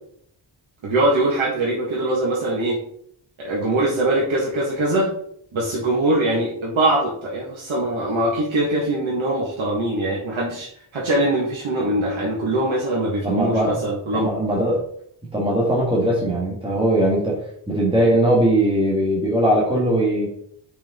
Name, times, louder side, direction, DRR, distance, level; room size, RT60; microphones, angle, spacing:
voice 1, 0.8-2.8 3.4-5.1 5.5-14.3, right 1 dB, 85° right, -5 dB, 1.7 m, -22 dB
voice 2, 13.2-13.8 14.1-14.8 15.3-17.4 17.7-20.3, right 1 dB, 10° right, -5 dB, 1.6 m, -20 dB
5.5 x 5.0 x 3.7 m, 0.65 s
wide cardioid pair, 160°, 46 cm